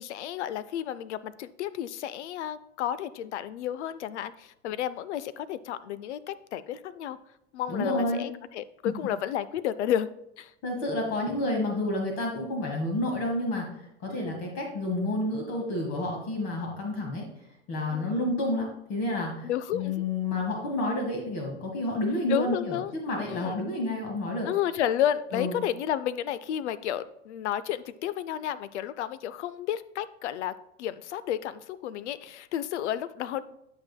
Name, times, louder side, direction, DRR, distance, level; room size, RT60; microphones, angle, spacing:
voice 1, 0.0-7.2 7.5-10.1 10.4-10.5 14.1-14.3 17.9-18.2 19.4-20.0 22.3-22.9 23.3-23.6 24.4-30.5 30.8-33.6, left 10 dB, 75° left, 16 dB, 0.5 m, -32 dB
voice 2, 7.7-8.2 8.8-8.9 10.6-13.7 14.0-17.2 17.7-22.8 23.0-24.5 25.3-25.6, left 1 dB, 45° left, 1 dB, 1.7 m, -30 dB
11.5 x 5.3 x 2.2 m, 0.82 s
hypercardioid pair, 95°, 35 cm